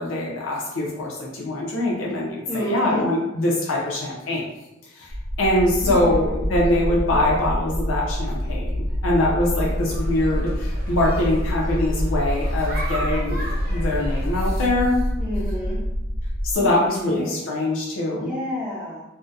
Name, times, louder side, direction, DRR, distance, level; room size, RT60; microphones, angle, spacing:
voice 1, 0.0-4.5 4.9-5.1 5.4-15.0 16.4-18.3, left 1 dB, 85° left, -3 dB, 0.5 m, -23 dB
voice 2, 2.5-3.1 5.7-6.3 15.2-15.8 16.6-17.5 18.1-19.0, left 1 dB, 5° right, -11 dB, 0.4 m, -30 dB
sound 1, 5.1-16.6, equal, 85° right, 0.8 m, -26 dB
sound 2, 9.6-14.6, right 1 dB, 50° right, 0.7 m, -36 dB
2.7 x 2.0 x 2.3 m, 0.91 s
head